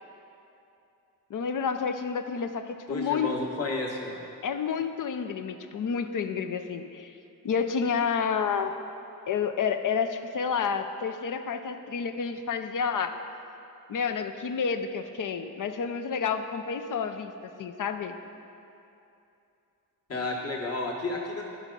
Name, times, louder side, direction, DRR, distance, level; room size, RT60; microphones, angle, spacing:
voice 1, 1.3-3.3 4.4-7.1 7.4-8.7 9.3-13.2 13.9-18.1, left 6 dB, 55° left, 8 dB, 0.6 m, -30 dB
voice 2, 2.9-4.2 20.1-21.4, left 2 dB, 40° left, -2 dB, 1.4 m, -31 dB
10.5 x 3.7 x 5.2 m, 2.8 s
supercardioid pair, 50°, 39 cm